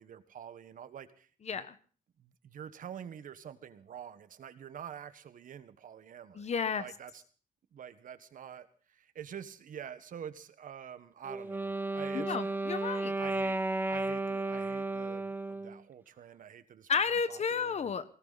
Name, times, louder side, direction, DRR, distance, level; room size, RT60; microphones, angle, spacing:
voice 1, 0.0-1.3 2.2-6.5 6.8-7.2 7.7-12.6 13.2-16.9 17.3-17.9, right 8 dB, 70° right, 12 dB, 1.5 m, -47 dB
voice 2, 1.4-1.8 6.3-6.8 12.1-13.1 16.9-18.0, left 6 dB, 50° left, 13 dB, 1.4 m, -32 dB
Wind instrument woodwind instrument, 11.2-15.8, right 2 dB, 15° right, 0.9 m, -33 dB
20.0 x 17.5 x 4.1 m, 0.40 s
cardioid pair, 100°, 14 cm